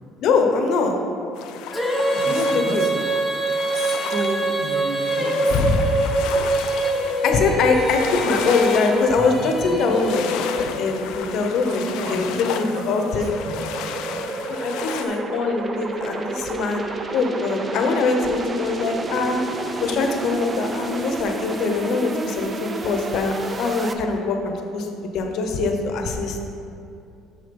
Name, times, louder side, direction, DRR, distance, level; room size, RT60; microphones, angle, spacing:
voice 1, 0.2-1.0 2.2-2.8 5.5-5.8 7.2-10.5 10.8-11.8 12.1-13.3 14.5-16.8 17.1-19.4 19.8-26.4, left 4 dB, 55° left, 4 dB, 0.8 m, -23 dB
sound 1, 1.4-15.1, left 8 dB, 75° left, 0.5 m, -33 dB
Female singing, 1.7-10.9, right 1 dB, ahead, 0.8 m, -24 dB
voice 2, 2.1-3.1 3.7-5.5 7.7-8.0 11.6-14.4 14.8-15.2, right 2 dB, 50° right, 1 dB, 1.1 m, -33 dB
sound 2, 9.2-23.9, right 3 dB, 20° right, 0.5 m, -32 dB
6.7 x 6.2 x 5.3 m, 2.7 s
cardioid pair, 160°, 0 cm